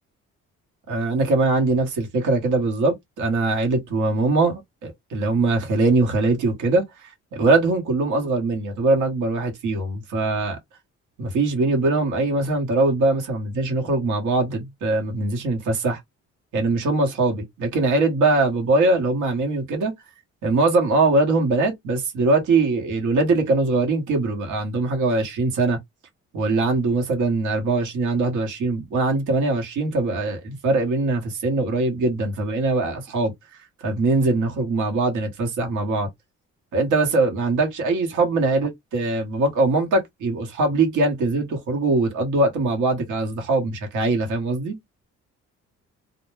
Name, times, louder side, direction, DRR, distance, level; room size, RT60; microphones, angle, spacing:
voice 1, 0.9-10.6 11.2-16.0 16.5-19.9 20.4-25.8 26.3-33.3 33.8-36.1 36.7-44.8, right 3 dB, 80° right, 1.0 m, -22 dB
2.1 x 2.1 x 3.1 m
cardioid pair, 90°, 30 cm